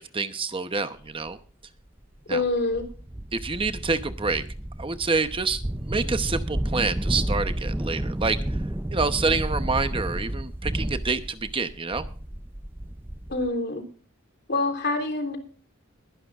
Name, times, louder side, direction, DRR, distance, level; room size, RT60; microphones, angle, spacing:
voice 1, 0.0-1.4 2.3-2.4 3.3-4.4 4.8-8.6 8.9-12.0, right 4 dB, 25° right, 10 dB, 0.9 m, -27 dB
sound 1, 1.3-1.4 2.0-2.1 2.5-13.5, right 1 dB, 10° right, 0.5 m, -31 dB
voice 2, 2.3-2.9 13.3-13.8 14.5-15.4, left 2 dB, 55° left, 5 dB, 3.5 m, -26 dB
21.5 x 11.5 x 2.5 m, 0.40 s
head